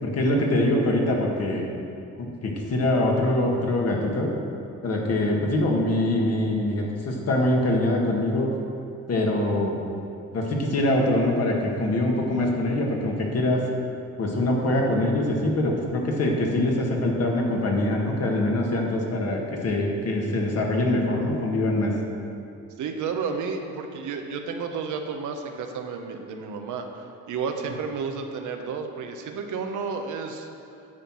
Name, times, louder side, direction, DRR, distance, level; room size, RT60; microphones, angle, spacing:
voice 1, 0.0-1.7 2.2-4.3 4.8-8.5 9.1-9.8 10.3-13.6 14.2-21.9, left 1 dB, 55° left, 0 dB, 1.7 m, -24 dB
voice 2, 22.8-30.5, right 5 dB, 80° right, 4 dB, 1.0 m, -32 dB
9.8 x 4.6 x 7.5 m, 2.6 s
cardioid pair, 90°, 30 cm